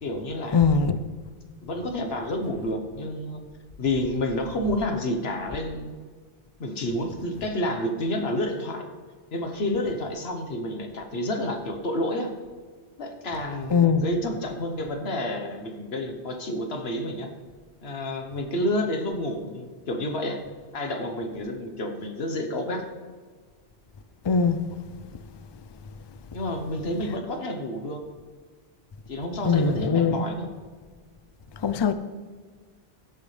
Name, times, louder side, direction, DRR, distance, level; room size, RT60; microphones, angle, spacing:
voice 1, 0.0-0.7 1.6-3.4 3.8-5.9 6.6-8.8 9.3-12.3 13.0-17.3 17.8-20.4 20.7-22.8 26.3-28.0 29.1-30.5, left 1 dB, 75° left, 4 dB, 1.4 m, -29 dB
voice 2, 0.5-1.0 13.7-14.0 24.2-24.6 29.4-30.2 31.6-31.9, left 5 dB, 40° left, 11 dB, 0.3 m, -21 dB
16.0 x 7.0 x 3.3 m, 1.5 s
omnidirectional pair, 1.1 m